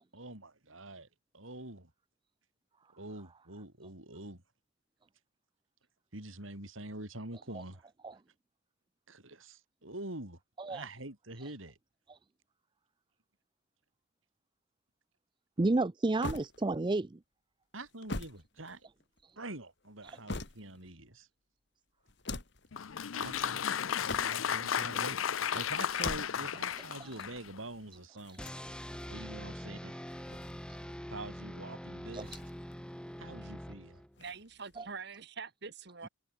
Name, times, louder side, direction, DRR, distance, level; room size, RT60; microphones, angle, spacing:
voice 1, 0.1-1.1 1.3-1.9 3.0-4.4 6.1-7.8 9.1-10.4 10.7-11.8 17.7-18.9 19.4-21.3 23.2-23.7 24.0-28.4 29.1-30.0 31.1-32.4 33.2-34.0, right 2 dB, 80° right, 5.7 m, -45 dB
voice 2, 15.6-17.2 20.0-20.2 27.0-27.1 32.1-32.4 34.8-34.9, right 2 dB, 25° right, 0.5 m, -31 dB
sound 1, 16.2-17.0 17.8-19.2 19.8-20.9 22.1-22.7 23.9-24.6 25.8-26.7 28.2-29.1 30.0-31.0 32.2-32.8 33.1-33.2 34.1-34.9, left 2 dB, 60° left, 2.6 m, -43 dB
Applause, 22.7-27.6, left 8 dB, 85° left, 0.6 m, -34 dB
sound 2, 28.4-34.2, equal, 5° left, 4.1 m, -44 dB
voice 3, 34.2-36.1, right 5 dB, 55° right, 1.9 m, -45 dB
head